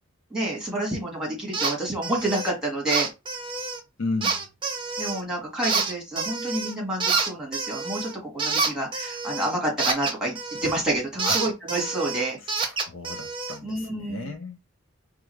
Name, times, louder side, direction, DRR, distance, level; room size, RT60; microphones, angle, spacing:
voice 1, 0.3-3.1 5.0-10.4 10.6-12.4 13.6-14.3, right 1 dB, 5° right, 1.5 m, -29 dB
sound 1, 1.5-1.7 2.0-2.5 2.9-3.8 4.2-5.2 5.6-6.7 7.0-10.8 11.2-13.6, right 4 dB, 25° right, 0.8 m, -28 dB
voice 2, 4.0-4.4 11.2-11.4 12.8-14.6, left 3 dB, 60° left, 0.6 m, -33 dB
4.6 x 2.4 x 3.1 m
head